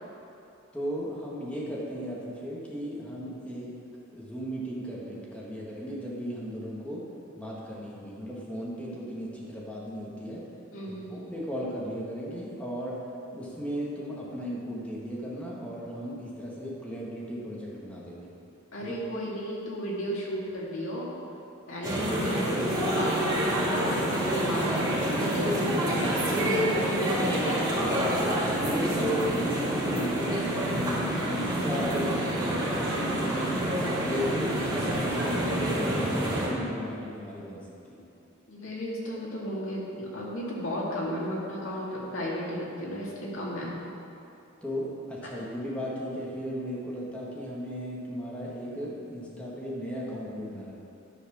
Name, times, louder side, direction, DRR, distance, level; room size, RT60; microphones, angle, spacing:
voice 1, 0.7-3.7 4.1-10.5 10.9-18.3 18.8-18.9 25.9-26.4 28.3-33.6 33.9-38.1 44.6-50.7, equal, 5° left, -5 dB, 1.7 m, -36 dB
voice 2, 10.7-11.3 18.7-21.1 21.7-25.6 26.0-27.9 30.2-30.4 38.5-43.7, equal, 75° left, -5 dB, 2.2 m, -34 dB
sound 1, 21.8-36.5, right 1 dB, 20° right, 2.1 m, -27 dB
10.5 x 4.8 x 6.2 m, 2.8 s
head